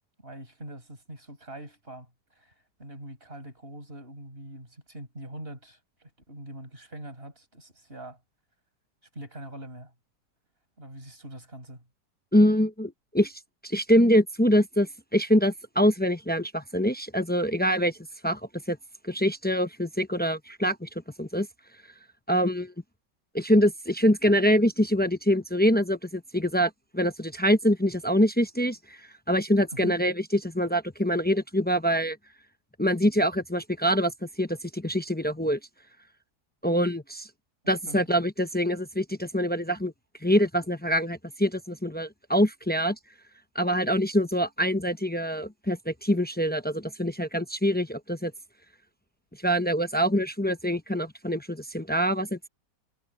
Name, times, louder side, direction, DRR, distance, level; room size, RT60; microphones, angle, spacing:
voice 1, 0.2-2.5 2.8-8.2 9.1-9.9 10.8-11.8 29.7-30.0 37.9-38.0, right 1 dB, 35° right, 8.3 m, -43 dB
voice 2, 12.3-18.0 18.2-18.4 18.7-18.8 19.0-20.9 21.2-21.5 22.3-22.7 23.3-32.2 32.8-34.1 34.4-35.6 36.6-37.3 37.7-39.9 40.2-43.0 43.5-48.3 49.4-52.5, equal, 15° left, 0.3 m, -25 dB
omnidirectional pair, 1.8 m